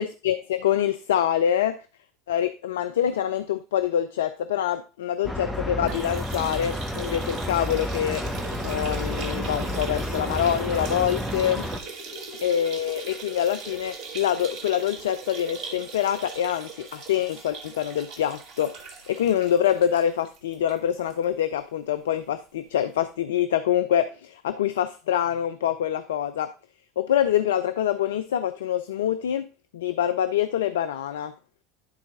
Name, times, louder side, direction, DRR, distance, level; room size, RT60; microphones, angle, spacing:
voice 1, 0.0-1.8 2.3-8.2 8.6-11.6 12.4-18.8 19.1-26.5 27.0-29.4 29.7-31.3, left 10 dB, 75° left, 12 dB, 0.4 m, -25 dB
sound 1, 5.2-11.8, equal, ahead, 1.4 m, -31 dB
sound 2, 5.8-21.2 21.5-21.6 21.9-22.0 23.0-23.1, right 4 dB, 50° right, 1.7 m, -40 dB
11.0 x 4.0 x 3.7 m, 0.34 s
hypercardioid pair, 75°, 0 cm